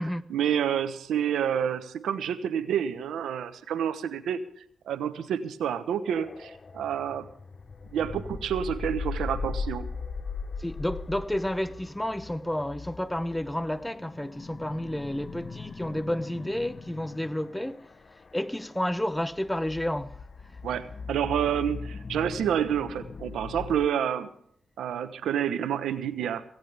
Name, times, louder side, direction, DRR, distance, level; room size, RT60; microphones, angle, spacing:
voice 1, 0.3-4.4 4.9-7.3 7.9-9.9 20.6-24.3 24.8-26.4, right 9 dB, 85° right, 1.0 m, -28 dB
sound 1, 6.1-23.9, left 4 dB, 45° left, 1.0 m, -39 dB
voice 2, 10.6-17.9 18.3-20.2, left 1 dB, 10° left, 0.9 m, -30 dB
17.0 x 16.5 x 3.5 m
cardioid pair, 60°, 0 cm